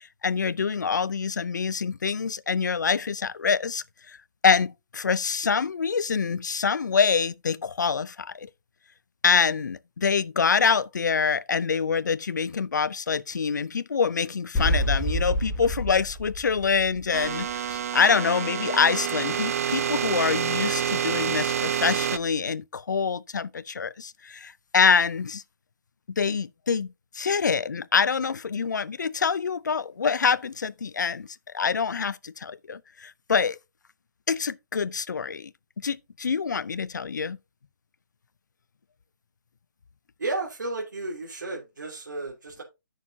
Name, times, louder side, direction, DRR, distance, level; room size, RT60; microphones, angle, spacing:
voice 1, 0.0-4.2 4.4-8.5 9.2-25.4 26.1-31.3 31.5-33.6 34.3-35.5 35.8-37.4, left 5 dB, 70° left, 0.6 m, -25 dB
sound 1, 14.5-17.5, equal, 15° left, 3.4 m, -28 dB
sound 2, 17.1-22.2, right 9 dB, 50° right, 0.5 m, -28 dB
voice 2, 40.2-42.6, right 2 dB, 75° right, 3.0 m, -33 dB
13.0 x 6.6 x 2.8 m
figure-of-eight pair, 140°, 10 cm